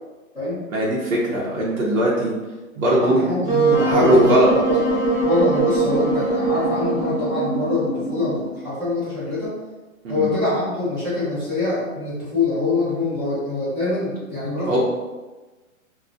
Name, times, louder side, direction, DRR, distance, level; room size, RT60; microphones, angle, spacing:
voice 1, 0.7-2.3 2.8-3.2 3.8-4.5 10.0-10.3 14.7-14.8, right 1 dB, 70° right, -5 dB, 0.9 m, -19 dB
voice 2, 3.0-4.3 4.6-4.8 5.2-9.6 10.1-14.8, left 3 dB, 5° right, -15 dB, 0.8 m, -24 dB
Wind instrument woodwind instrument, 3.5-8.6, right 3 dB, 35° right, 0.9 m, -22 dB
3.7 x 2.4 x 2.4 m, 1.2 s
hypercardioid pair, 165°, 41 cm